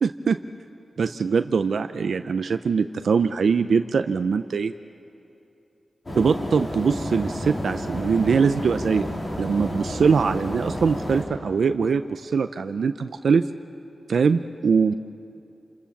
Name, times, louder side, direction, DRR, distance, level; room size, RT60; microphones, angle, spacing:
voice 1, 0.0-0.4 1.0-4.7 6.2-9.1 9.4-13.5 14.1-14.9, right 5 dB, 80° right, 9 dB, 0.6 m, -22 dB
sound 1, 6.1-11.3, equal, 35° left, 4.1 m, -31 dB
28.0 x 26.5 x 7.2 m, 2.7 s
wide cardioid pair, 140°, 0 cm